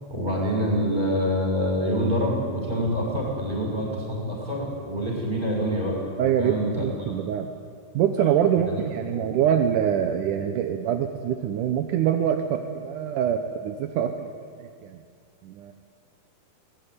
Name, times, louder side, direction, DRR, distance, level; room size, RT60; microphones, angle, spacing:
voice 1, 0.1-6.0 6.4-7.1 8.7-8.8 9.1-9.3, equal, 10° right, -2 dB, 6.2 m, -26 dB
voice 2, 6.2-7.5 7.9-14.3 14.6-15.0 15.4-15.7, right 9 dB, 75° right, 6 dB, 1.9 m, -25 dB
21.0 x 18.0 x 9.7 m, 2.1 s
omnidirectional pair, 4.9 m